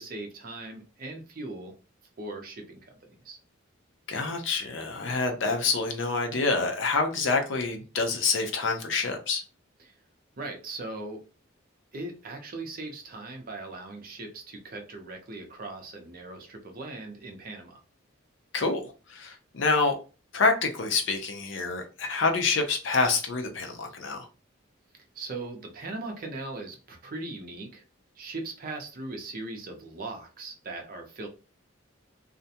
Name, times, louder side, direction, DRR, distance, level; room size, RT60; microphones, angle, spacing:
voice 1, 0.0-1.7 2.2-2.9 3.2-3.4 9.8-9.9 10.4-11.2 11.9-17.8 25.1-27.8 28.2-31.3, right 2 dB, 45° right, 0.5 m, -39 dB
voice 2, 4.1-9.4 18.5-20.0 20.3-24.3, left 4 dB, 65° left, 0.5 m, -27 dB
2.4 x 2.1 x 2.7 m
head